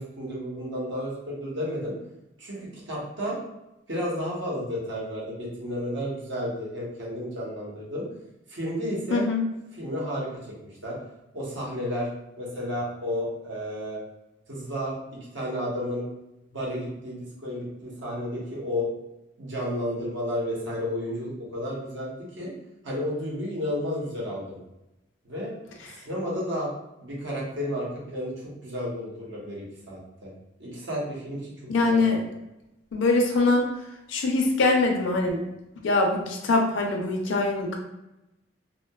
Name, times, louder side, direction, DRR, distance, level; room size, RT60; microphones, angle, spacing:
voice 1, 0.0-1.9 2.4-3.4 3.9-8.1 8.5-9.3 9.7-10.5 10.8-11.0 11.3-12.1 12.4-14.0 14.5-15.0 15.3-16.1 16.5-18.9 19.4-22.5 22.8-24.6 25.2-25.5 26.0-26.7 27.0-28.3 28.6-30.3 30.6-31.4 31.8-32.0, equal, 70° right, -4 dB, 0.9 m, -32 dB
voice 2, 9.1-9.4 31.7-32.2 32.9-33.7 34.1-35.5 35.8-37.8, left 3 dB, 80° left, 2 dB, 0.5 m, -23 dB
2.6 x 2.2 x 2.2 m, 0.93 s
head